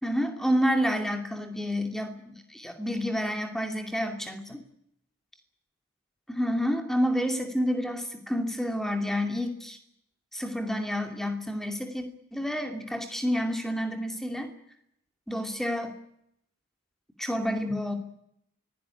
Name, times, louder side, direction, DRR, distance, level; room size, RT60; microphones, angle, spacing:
voice 1, 0.0-4.6 6.3-9.8 10.3-12.1 12.3-14.5 15.3-16.0 17.2-18.0, equal, ahead, 5 dB, 2.5 m, -29 dB
24.0 x 17.0 x 9.9 m, 0.77 s
head